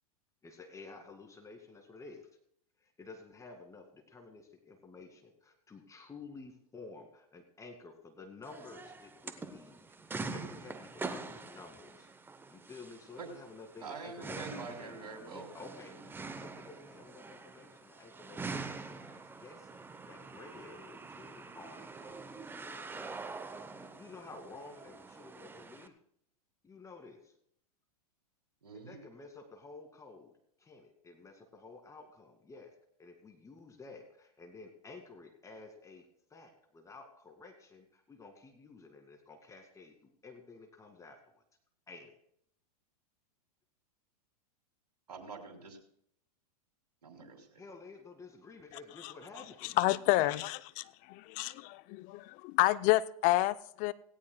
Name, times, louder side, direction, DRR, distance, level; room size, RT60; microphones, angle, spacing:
voice 1, 0.4-2.3 2.8-12.1 12.5-26.0 26.6-27.3 28.7-30.3 30.6-32.7 33.0-36.0 36.3-41.4 41.9-42.2 47.6-49.8 50.2-50.4, left 3 dB, 15° left, 5 dB, 2.1 m, -52 dB
sound 1, 8.4-25.9, right 4 dB, 10° right, 0.8 m, -45 dB
voice 2, 13.8-15.5 28.6-29.0 45.1-45.8 47.0-47.6, right 4 dB, 90° right, 3 dB, 3.0 m, -45 dB
voice 3, 49.8-50.6 51.1-53.9, left 17 dB, 40° left, 16 dB, 0.5 m, -29 dB
17.5 x 17.0 x 2.3 m, 0.69 s
hypercardioid pair, 105°, 20 cm